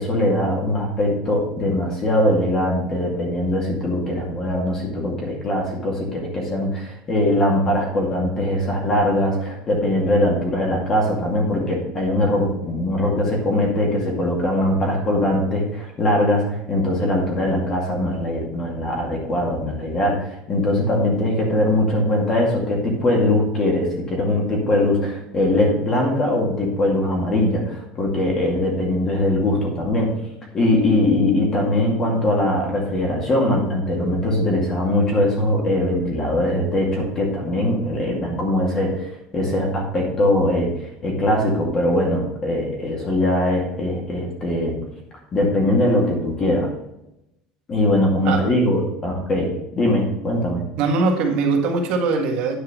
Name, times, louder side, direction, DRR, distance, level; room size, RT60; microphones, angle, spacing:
voice 1, 0.0-30.1 30.5-39.0 39.3-40.7 41.0-44.8 45.3-46.7 47.7-49.5 49.8-50.6, left 1 dB, 25° left, -1 dB, 2.2 m, -21 dB
voice 2, 50.8-52.6, right 4 dB, 50° right, 2 dB, 1.9 m, -21 dB
10.0 x 4.8 x 6.2 m, 0.86 s
cardioid pair, 170°, 2 cm